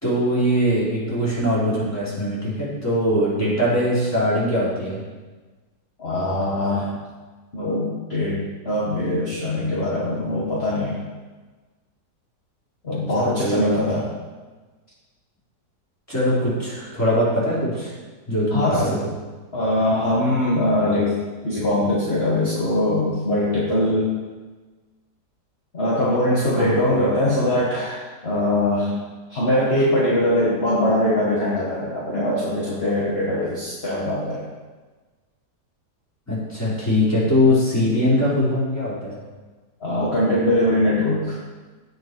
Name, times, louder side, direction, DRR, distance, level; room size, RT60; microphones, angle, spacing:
voice 1, 0.0-5.0 12.9-14.0 16.1-17.9 18.3-18.9 26.5-26.8 36.3-39.2, equal, 10° left, -9 dB, 4.0 m, -22 dB
voice 2, 6.0-6.9 7.5-8.4 8.6-11.0 12.8-14.0 18.5-19.0 19.5-21.1 21.4-24.1 25.7-28.9 29.3-34.4 39.8-41.4, left 1 dB, 35° left, -7 dB, 2.0 m, -22 dB
16.5 x 5.5 x 4.7 m, 1.3 s
omnidirectional pair, 1.8 m